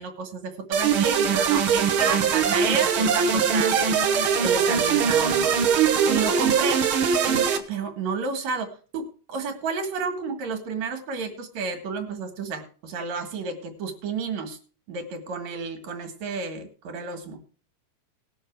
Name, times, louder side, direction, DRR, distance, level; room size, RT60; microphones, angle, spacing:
voice 1, 0.0-4.0 4.4-5.5 6.1-6.8 7.3-9.0 9.3-14.6 14.9-17.4, right 5 dB, 75° right, 6 dB, 3.1 m, -31 dB
sound 1, 0.7-7.6, right 6 dB, 55° right, 1.6 m, -21 dB
19.5 x 6.6 x 4.6 m, 0.40 s
omnidirectional pair, 3.3 m